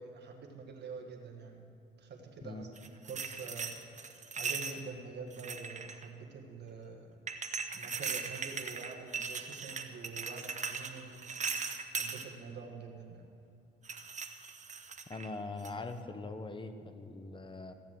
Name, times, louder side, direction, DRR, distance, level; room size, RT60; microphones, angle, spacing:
voice 1, 0.0-1.7 2.0-7.2 7.7-11.3 12.0-13.3, right 4 dB, 60° right, 2 dB, 1.7 m, -46 dB
sound 1, 2.8-4.8 5.3-6.1 7.3-12.2 13.8-15.3 15.6-15.9, right 5 dB, 35° right, 1.0 m, -39 dB
voice 2, 15.1-17.7, left 3 dB, 25° left, 8 dB, 1.1 m, -42 dB
15.0 x 7.4 x 7.7 m, 2.6 s
cardioid pair, 90°, 20 cm